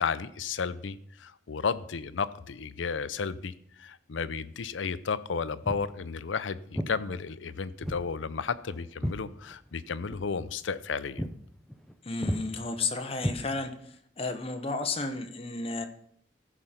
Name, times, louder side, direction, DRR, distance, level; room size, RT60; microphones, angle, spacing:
voice 1, 0.0-3.5 3.8-11.2, left 5 dB, 85° left, 15 dB, 0.6 m, -33 dB
Walk footsteps, 5.6-5.9 6.7-7.0 7.8-8.1 8.4-9.8 10.1-10.3 10.7-10.9 11.2-11.4 11.7-11.9 12.2-12.5 13.2-13.9, equal, ahead, 0.6 m, -33 dB
voice 2, 12.0-13.7 14.2-15.8, left 3 dB, 30° left, 6 dB, 1.0 m, -32 dB
15.0 x 5.1 x 5.7 m, 0.66 s
head